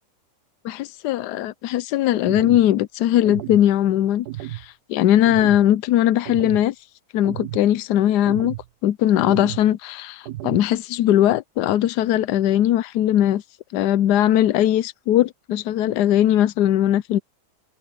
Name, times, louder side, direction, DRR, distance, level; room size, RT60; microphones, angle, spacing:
voice 1, 0.6-6.7 7.1-8.6 8.8-13.4 13.7-17.2, left 12 dB, 85° left, 1.2 m, -19 dB
sound 1, 2.2-2.7 3.2-3.7 4.2-4.7 5.2-5.6 6.2-6.7 7.2-7.6 8.3-8.7 9.2-9.7 10.2-10.7, right 16 dB, 80° right, 1.2 m, -33 dB
omnidirectional pair, 1.7 m